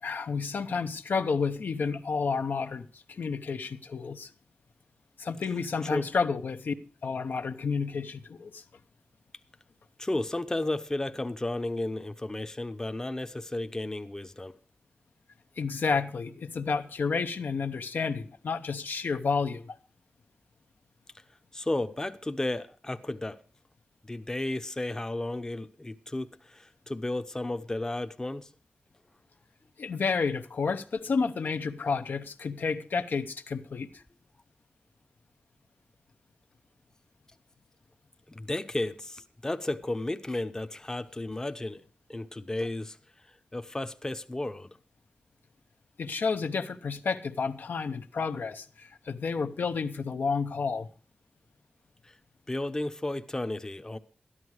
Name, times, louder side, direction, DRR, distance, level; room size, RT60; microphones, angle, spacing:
voice 1, 0.0-4.3 5.2-6.8 7.0-8.6 15.6-19.8 29.8-34.0 46.0-50.9, left 5 dB, 80° left, 0.7 m, -30 dB
voice 2, 10.0-14.6 21.5-23.4 24.1-28.5 38.3-41.8 42.1-43.0 43.5-44.8 52.0-52.1 52.5-54.0, left 2 dB, 20° left, 0.6 m, -33 dB
13.0 x 11.0 x 4.7 m
wide cardioid pair, 95°, 3 cm